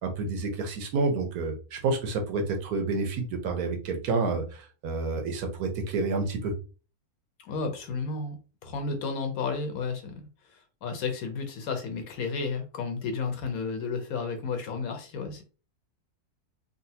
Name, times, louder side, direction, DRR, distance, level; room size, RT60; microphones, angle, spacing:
voice 1, 0.0-6.5, right 3 dB, 80° right, 5 dB, 1.2 m, -29 dB
voice 2, 7.4-8.4 8.6-15.4, left 4 dB, 70° left, 6 dB, 1.2 m, -32 dB
4.0 x 2.2 x 2.7 m, 0.34 s
omnidirectional pair, 1.6 m